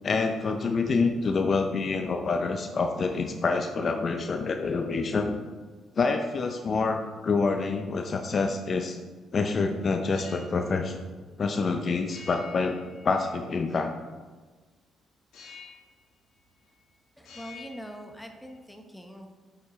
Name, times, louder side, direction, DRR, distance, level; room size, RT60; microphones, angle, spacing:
voice 1, 0.0-5.4 6.0-9.0 9.3-11.0 11.4-12.8 13.0-13.9, left 4 dB, 50° left, 5 dB, 0.5 m, -27 dB
sound 1, 10.1-10.6 12.1-13.5 15.3-16.0 16.3-16.9 17.2-18.5, left 5 dB, 75° left, 1.5 m, -49 dB
voice 2, 17.2-19.3, equal, 5° left, 4 dB, 1.1 m, -43 dB
7.1 x 6.5 x 3.1 m, 1.4 s
supercardioid pair, 55°, 0 cm